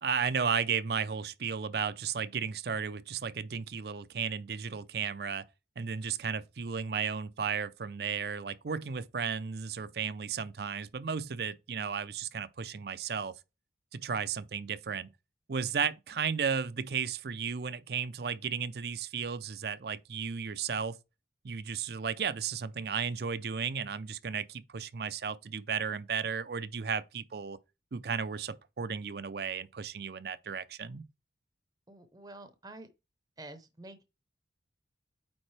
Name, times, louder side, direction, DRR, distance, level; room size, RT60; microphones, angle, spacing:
voice 1, 0.0-5.5 5.8-13.4 13.9-15.1 15.5-20.9 21.4-27.6 27.9-31.0, right 6 dB, 55° right, 0.5 m, -34 dB
voice 2, 31.9-32.9 33.4-34.0, right 2 dB, 20° right, 0.7 m, -48 dB
8.7 x 3.8 x 3.2 m
head